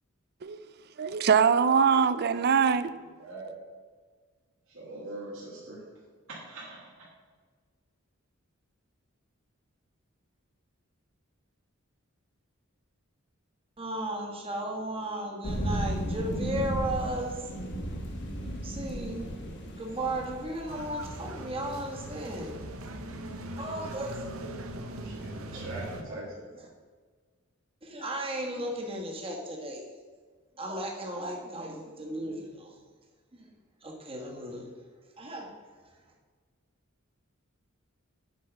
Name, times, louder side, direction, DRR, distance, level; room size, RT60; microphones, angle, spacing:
voice 1, 1.0-2.9, right 6 dB, 50° right, 0.4 m, -23 dB
voice 2, 3.2-3.5 4.7-5.8 6.3-6.9 25.0-26.2, right 2 dB, 65° right, 2.6 m, -41 dB
voice 3, 13.8-17.4 18.6-22.7 23.6-24.2 25.5-26.7 27.8-29.8 30.6-32.8 33.3-33.5 33.8-34.7 35.2-35.6, right 1 dB, 25° right, 1.5 m, -35 dB
sound 1, 15.4-23.7, equal, 55° left, 1.5 m, -35 dB
sound 2, 20.7-26.0, right 1 dB, 85° right, 1.0 m, -40 dB
8.4 x 5.3 x 6.1 m
head